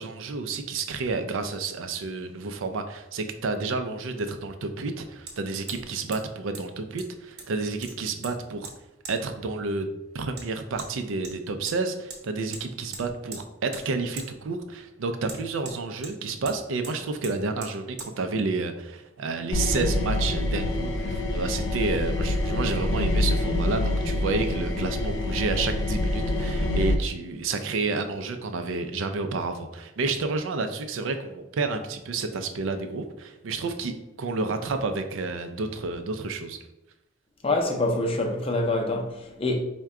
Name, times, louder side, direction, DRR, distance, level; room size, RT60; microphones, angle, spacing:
voice 1, 0.0-8.7 9.1-36.6, right 3 dB, 85° right, 0.4 m, -30 dB
Hammer, 5.3-5.4 5.7-5.9 6.1-6.2 6.5-6.6 7.0-7.5 7.8-8.3 8.6-8.7 9.0-9.2 10.4-10.5 10.8-10.9 11.2-11.8 12.1-12.2 12.5-12.6 12.9-13.4 13.7-13.9 14.2-14.3 15.3-16.1 16.5-16.6 16.8-16.9 17.2-17.3 17.6-17.7 18.0-18.1, right 4 dB, 55° right, 0.9 m, -40 dB
sound 1, 19.5-26.9, left 1 dB, 85° left, 0.5 m, -26 dB
voice 2, 37.4-39.6, left 2 dB, 30° left, 0.5 m, -25 dB
4.6 x 2.2 x 3.6 m
head